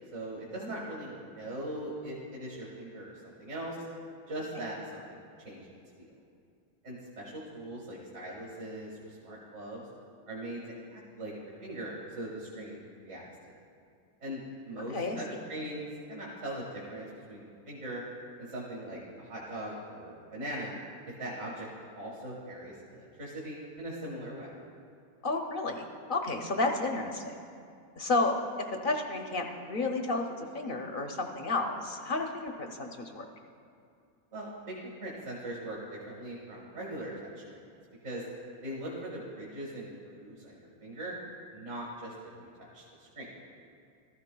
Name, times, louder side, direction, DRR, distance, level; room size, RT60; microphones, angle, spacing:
voice 1, 0.1-3.8 4.3-5.7 6.0-6.1 6.8-9.9 10.3-13.2 14.2-18.0 18.4-20.7 21.1-21.7 22.0-24.5 34.3-37.6 38.0-38.3 38.6-41.1 41.5-42.1 42.4-43.3, right 1 dB, 55° right, -5 dB, 1.8 m, -40 dB
voice 2, 14.9-15.4 25.2-27.3 28.0-28.3 28.7-33.3, left 2 dB, 55° left, 3 dB, 0.6 m, -32 dB
14.5 x 13.5 x 2.2 m, 2.4 s
omnidirectional pair, 1.6 m